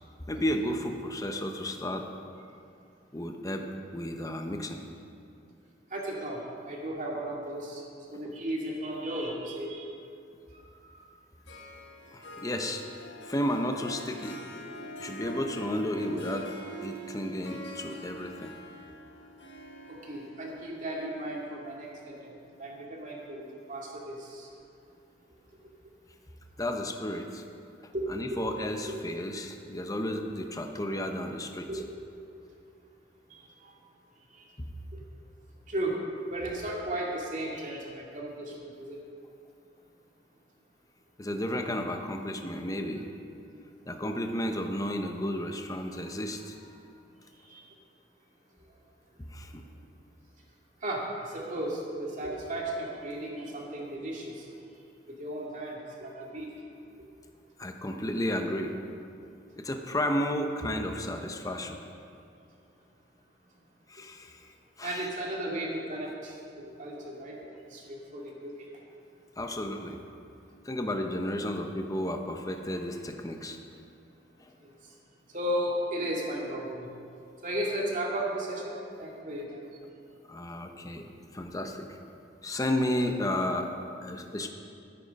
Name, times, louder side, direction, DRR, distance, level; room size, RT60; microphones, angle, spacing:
voice 1, 0.3-2.1 3.1-3.7 3.9-4.8 8.1-8.3 12.1-12.8 13.2-14.4 15.0-16.5 16.8-18.5 26.6-27.4 28.1-31.7 41.2-43.1 43.9-46.5 49.3-49.6 57.6-58.7 59.6-61.8 63.9-64.5 64.8-65.1 69.4-70.0 70.6-73.6 74.4-74.5 80.3-81.0 81.3-81.9 82.4-83.7 84.0-84.5, left 1 dB, 20° left, 4 dB, 0.8 m, -32 dB
voice 2, 5.9-7.8 8.1-9.9 10.7-10.9 19.9-22.1 22.6-24.5 27.9-28.6 28.9-29.0 31.7-31.9 33.3-33.7 34.9-35.0 35.7-39.0 47.5-47.7 50.8-54.5 55.2-56.5 64.8-67.4 67.7-68.7 75.3-76.9 77.4-78.7 79.0-79.6, right 1 dB, 40° right, -2 dB, 2.3 m, -35 dB
Harp, 11.5-22.9, equal, 65° left, 1.5 m, -45 dB
13.0 x 10.0 x 5.3 m, 2.5 s
head